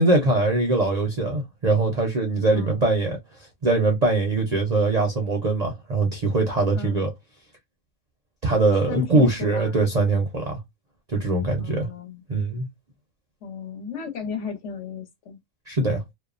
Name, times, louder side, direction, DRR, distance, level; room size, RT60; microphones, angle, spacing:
voice 1, 0.0-3.2 3.6-7.1 8.4-10.6 11.1-11.9 12.3-12.7 15.7-16.0, right 2 dB, 45° right, 0.5 m, -22 dB
voice 2, 2.5-2.9 6.7-7.1 8.8-9.8 11.6-12.2 13.4-15.4, left 7 dB, 65° left, 1.2 m, -34 dB
2.6 x 2.1 x 2.4 m
omnidirectional pair, 1.3 m